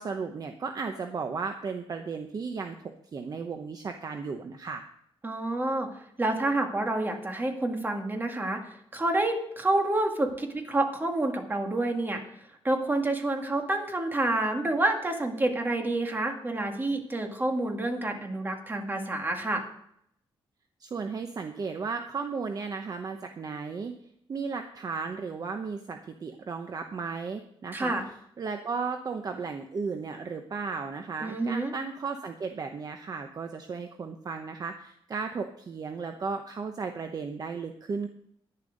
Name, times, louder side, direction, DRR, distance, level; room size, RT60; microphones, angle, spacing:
voice 1, 0.0-4.8 20.8-23.9 24.3-38.1, right 5 dB, 40° right, 6 dB, 0.8 m, -35 dB
voice 2, 5.2-5.9 6.2-12.2 12.6-19.6 27.7-28.0 31.2-31.7, right 2 dB, 20° right, 4 dB, 1.9 m, -28 dB
11.0 x 10.5 x 5.2 m, 0.72 s
wide cardioid pair, 135°, 10 cm